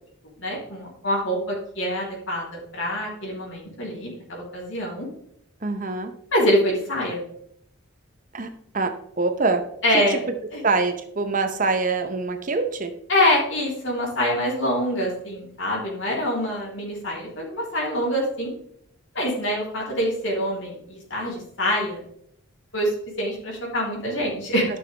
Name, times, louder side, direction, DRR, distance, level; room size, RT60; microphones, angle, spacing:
voice 1, 0.4-5.1 6.3-7.2 9.8-10.3 10.5-10.6 13.1-18.5 19.1-22.0 22.7-22.9 23.2-24.7, equal, 60° left, -3 dB, 3.4 m, -25 dB
voice 2, 5.6-6.1 8.3-8.5 8.7-8.9 9.2-9.6 9.9-10.2 10.6-12.9, right 3 dB, 40° right, 6 dB, 0.8 m, -24 dB
13.5 x 6.1 x 3.4 m, 0.71 s
head